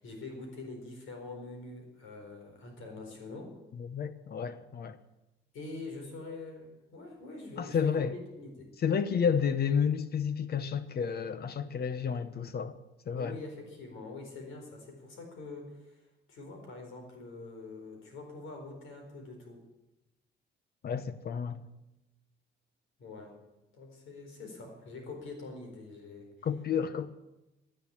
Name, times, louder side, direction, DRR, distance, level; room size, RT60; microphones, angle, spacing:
voice 1, 0.0-3.5 5.5-8.7 13.1-19.6 23.0-23.4 23.7-26.5, left 3 dB, 85° left, 4.5 m, -45 dB
voice 2, 3.8-5.0 7.6-8.1 8.8-12.8 13.1-13.4 20.8-21.6 26.4-27.1, left 7 dB, 55° left, 0.9 m, -31 dB
11.5 x 10.5 x 10.0 m
cardioid pair, 90°, 20 cm